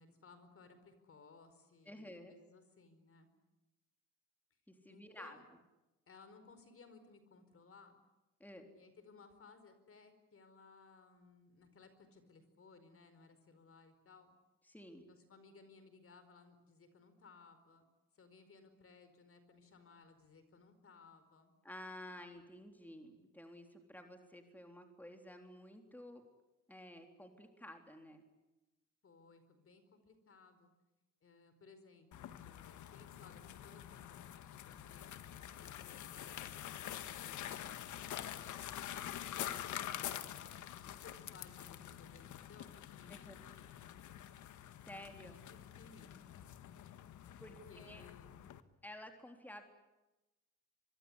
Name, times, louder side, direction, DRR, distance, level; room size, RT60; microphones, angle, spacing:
voice 1, 0.0-3.3 4.9-5.5 6.1-8.0 8.7-14.3 15.1-17.8 18.1-21.5 29.0-30.7 31.2-34.2 34.4-36.9 37.2-43.9 44.9-46.4 47.5-48.3, left 4 dB, 45° left, 10 dB, 4.8 m, -61 dB
voice 2, 1.9-2.3 4.7-5.4 8.4-8.7 14.7-15.0 21.6-26.2 26.7-28.2 43.3-43.4 44.8-45.4 47.4-48.0 48.8-49.6, left 1 dB, 5° left, 4 dB, 3.8 m, -52 dB
sound 1, 32.1-48.6, left 11 dB, 75° left, 1.6 m, -47 dB
24.5 x 23.0 x 9.8 m, 1.0 s
cardioid pair, 90°, 30 cm